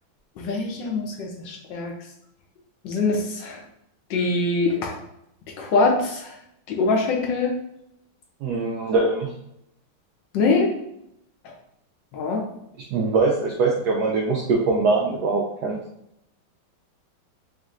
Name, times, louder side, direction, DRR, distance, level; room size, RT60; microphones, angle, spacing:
voice 1, 0.4-1.9 2.8-3.6 4.1-5.0 5.6-6.3 6.7-7.5 10.3-10.8 12.1-12.5, left 3 dB, 70° left, 1 dB, 1.3 m, -23 dB
voice 2, 8.4-9.3 12.9-15.8, right 3 dB, 75° right, -1 dB, 0.9 m, -22 dB
5.1 x 2.9 x 2.5 m, 0.78 s
omnidirectional pair, 2.2 m